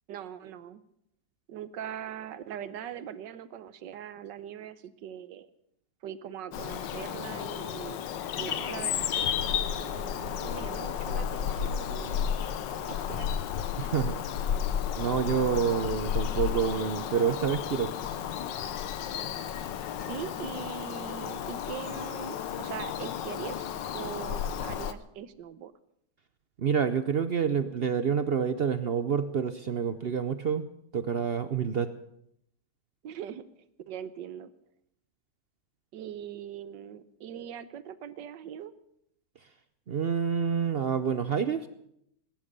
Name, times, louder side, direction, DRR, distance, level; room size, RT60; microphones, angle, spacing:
voice 1, 0.1-0.8 1.5-5.5 6.0-8.0 8.4-12.3 12.9-13.3 20.0-23.7 23.9-25.7 33.0-33.4 33.9-34.5 35.9-38.7, right 9 dB, 90° right, 14 dB, 1.5 m, -41 dB
Bird vocalization bird call bird song, 6.5-24.9, left 9 dB, 90° left, 1.5 m, -33 dB
voice 2, 13.8-14.2 14.9-17.9 26.6-30.7 30.9-31.9 39.9-41.7, right 7 dB, 65° right, 12 dB, 0.5 m, -28 dB
19.5 x 10.5 x 6.8 m, 0.76 s
omnidirectional pair, 1.9 m